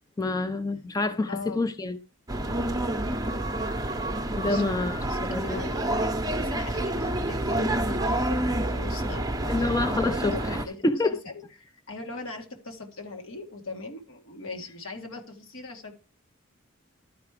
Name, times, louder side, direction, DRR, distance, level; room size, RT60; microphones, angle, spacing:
voice 1, 0.2-2.0 4.4-5.6 9.5-11.1, left 2 dB, 15° left, 0.4 m, -27 dB
voice 2, 1.3-1.7 4.4-5.7 6.2-15.9, left 3 dB, 70° left, 1.8 m, -41 dB
sound 1, 2.3-10.6, right 1 dB, 20° right, 0.7 m, -28 dB
12.0 x 4.7 x 4.9 m
head